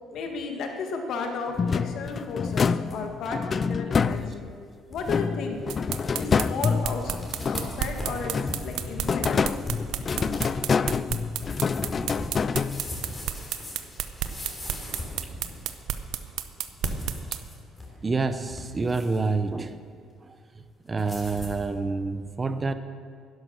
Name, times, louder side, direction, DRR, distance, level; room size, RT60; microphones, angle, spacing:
voice 1, 0.1-4.5 4.9-5.6 6.2-7.1 7.4-8.4 8.6-9.5, left 4 dB, 65° left, 3 dB, 1.7 m, -33 dB
sound 1, 1.6-4.6 5.1-7.9 8.2-13.2, left 5 dB, 35° left, 0.3 m, -27 dB
sound 2, 2.1-3.0 3.3-3.4 4.0-4.2 4.6-4.7 4.9-5.2 5.7-5.8 6.0-6.6 7.0-15.8 16.7-18.0 18.3-19.3 21.0-21.6, left 1 dB, 15° left, 3.1 m, -39 dB
sound 3, 5.7-17.4, right 12 dB, 80° right, 0.7 m, -31 dB
voice 2, 18.0-19.8 20.2-20.4 20.9-22.7, right 3 dB, 25° right, 11 dB, 0.7 m, -27 dB
11.0 x 11.0 x 6.4 m, 2.2 s
cardioid pair, 125°, 0 cm